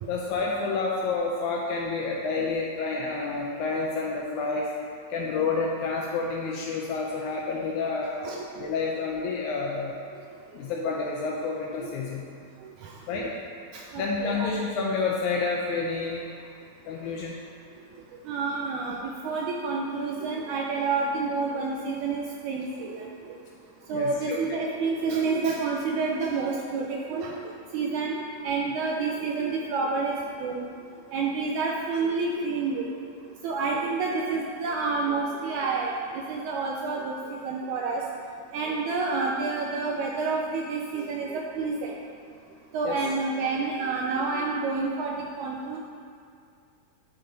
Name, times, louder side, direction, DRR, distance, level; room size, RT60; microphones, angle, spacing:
voice 1, 0.1-4.7 5.1-8.2 8.6-10.0 10.5-12.2 13.1-13.3 14.0-16.3 16.9-17.4 23.9-24.6 33.7-33.8 42.8-43.0, left 4 dB, 80° left, -2 dB, 1.8 m, -29 dB
voice 2, 12.6-13.3 13.7-14.5 18.3-23.4 23.9-27.4 27.7-28.2 28.4-30.7 31.1-32.9 33.4-38.0 38.5-42.0 42.7-45.8, right 4 dB, 80° right, -1 dB, 1.8 m, -29 dB
10.0 x 4.0 x 3.9 m, 2.4 s
omnidirectional pair, 3.9 m